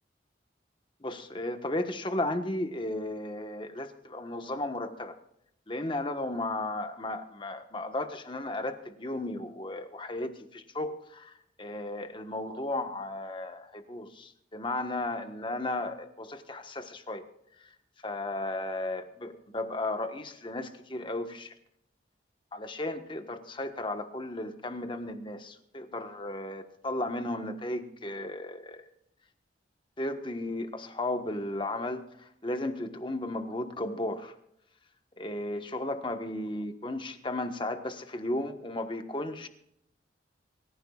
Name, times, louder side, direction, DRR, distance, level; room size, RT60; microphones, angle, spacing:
voice 1, 1.0-5.2 5.7-17.2 17.6-17.7 18.0-21.5 22.5-28.8 30.0-34.3 35.2-39.5, left 1 dB, 25° left, 7 dB, 1.4 m, -35 dB
25.5 x 15.0 x 2.4 m, 0.75 s
head